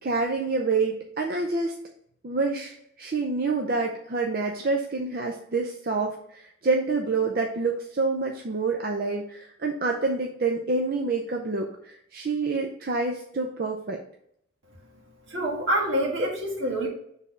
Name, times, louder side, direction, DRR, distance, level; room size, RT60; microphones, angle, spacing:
voice 1, 0.0-1.7 2.2-14.0, right 3 dB, 50° right, 2 dB, 0.5 m, -27 dB
voice 2, 15.3-16.9, right 1 dB, 75° right, -2 dB, 1.8 m, -26 dB
6.3 x 3.5 x 5.2 m, 0.71 s
head